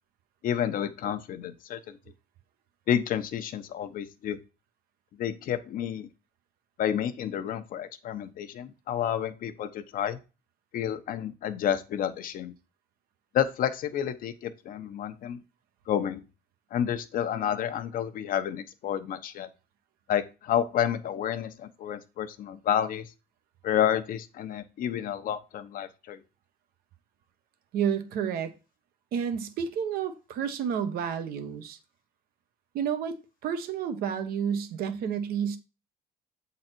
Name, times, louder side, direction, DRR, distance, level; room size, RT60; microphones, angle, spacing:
voice 1, 0.4-2.0 2.9-4.4 5.2-6.1 6.8-10.2 10.7-12.5 13.3-15.4 15.9-16.2 16.7-19.5 20.1-23.1 23.6-26.2, left 9 dB, 60° left, 0.9 m, -30 dB
voice 2, 27.7-28.6 29.1-31.8 32.7-35.6, right 8 dB, 65° right, 1.1 m, -30 dB
7.8 x 4.0 x 4.4 m
cardioid pair, 100°, 16 cm